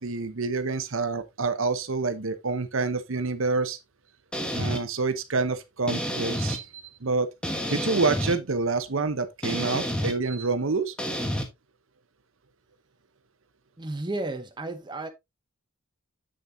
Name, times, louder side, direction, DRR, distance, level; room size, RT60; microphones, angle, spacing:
voice 1, 0.0-3.8 4.5-7.3 7.7-10.9, right 3 dB, 60° right, 0.9 m, -27 dB
sound 1, 4.3-4.8 5.9-6.6 7.4-8.4 9.4-10.1 11.0-11.4, equal, 5° left, 1.2 m, -29 dB
voice 2, 13.8-15.1, right 2 dB, 20° right, 0.7 m, -33 dB
7.8 x 7.2 x 2.7 m
head